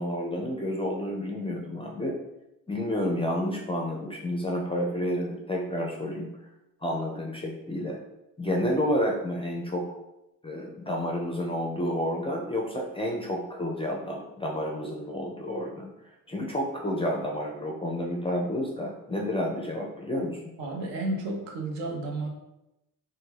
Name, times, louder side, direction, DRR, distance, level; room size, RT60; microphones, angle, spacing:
voice 1, 0.0-2.2 2.7-6.3 6.8-8.0 8.4-9.9 10.4-15.9 16.3-20.5, left 1 dB, 15° left, -1 dB, 0.4 m, -30 dB
voice 2, 20.6-22.3, right 2 dB, 70° right, 1 dB, 0.7 m, -32 dB
2.2 x 2.1 x 3.2 m, 0.92 s
hypercardioid pair, 45°, 46 cm